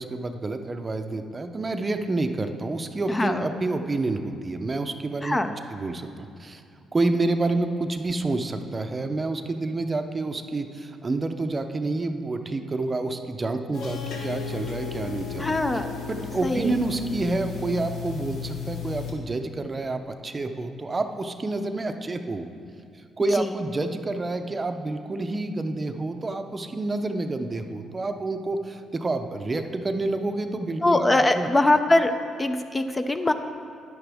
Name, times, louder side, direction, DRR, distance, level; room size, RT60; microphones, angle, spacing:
voice 1, 0.0-5.4 5.7-6.6 6.9-15.5 16.1-22.5 23.2-31.5, right 2 dB, 30° right, 7 dB, 0.6 m, -28 dB
voice 2, 3.1-3.5 5.2-5.5 15.4-15.9 16.4-16.7 23.4-23.5 30.8-32.1 32.4-33.3, left 2 dB, 20° left, 8 dB, 0.4 m, -22 dB
sound 1, 13.7-19.1, left 7 dB, 80° left, 1.3 m, -34 dB
10.0 x 9.7 x 3.5 m, 2.5 s
cardioid pair, 90°, 0 cm